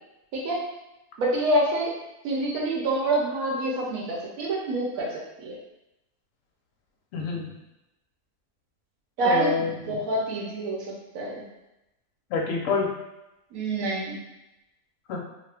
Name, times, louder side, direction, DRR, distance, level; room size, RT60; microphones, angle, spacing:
voice 1, 1.2-1.9 2.2-5.6 9.2-11.4 13.5-14.2, right 1 dB, 65° right, -3 dB, 1.1 m, -27 dB
voice 2, 7.1-7.5 9.2-10.0 12.3-12.9 15.1-15.2, left 5 dB, 65° left, -1 dB, 0.9 m, -27 dB
2.9 x 2.2 x 3.3 m, 0.92 s
omnidirectional pair, 1.7 m